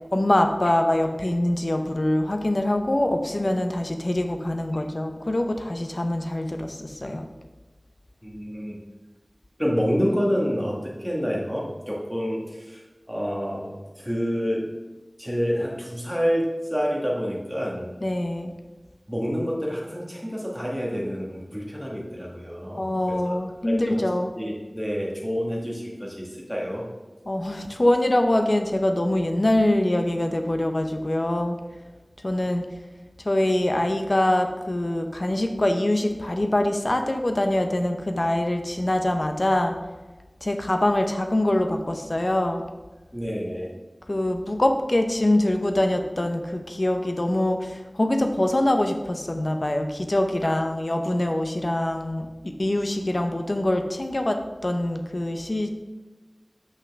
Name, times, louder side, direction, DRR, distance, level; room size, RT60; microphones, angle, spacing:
voice 1, 0.1-7.2 18.0-18.5 22.8-24.3 27.3-31.6 32.2-32.7 33.2-39.7 40.4-42.6 44.1-55.8, left 1 dB, 50° left, 5 dB, 0.7 m, -24 dB
voice 2, 8.2-8.8 9.6-14.7 15.2-17.9 19.1-23.4 23.7-24.0 24.4-26.9 43.1-43.7 50.4-50.6, equal, ahead, -3 dB, 1.9 m, -28 dB
8.3 x 5.8 x 3.6 m, 1.2 s
wide cardioid pair, 50°, 0 cm